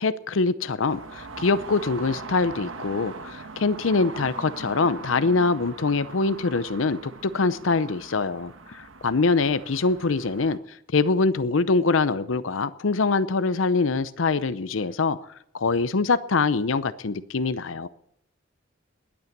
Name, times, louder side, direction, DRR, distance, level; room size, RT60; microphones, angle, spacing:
voice 1, 0.0-10.6 10.9-15.2 15.5-17.9, left 4 dB, 80° left, 14 dB, 0.7 m, -24 dB
sound 1, 0.9-10.6, right 3 dB, 90° right, 1.3 m, -41 dB
20.0 x 8.7 x 6.7 m, 0.75 s
head